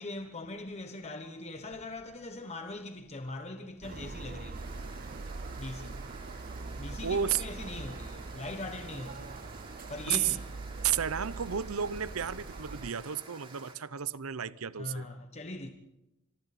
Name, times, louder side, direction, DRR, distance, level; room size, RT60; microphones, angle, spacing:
voice 1, 0.0-4.9 5.6-6.1 6.7-10.4 10.7-10.8 14.7-15.7, left 2 dB, 30° left, 1.2 m, -41 dB
sound 1, 3.8-12.9, right 3 dB, 45° right, 0.6 m, -42 dB
sound 2, 4.5-13.8, right 3 dB, 25° right, 3.5 m, -51 dB
voice 2, 7.0-7.4 10.1-10.3 10.8-15.1, right 8 dB, 90° right, 0.7 m, -32 dB
27.0 x 23.0 x 4.2 m
head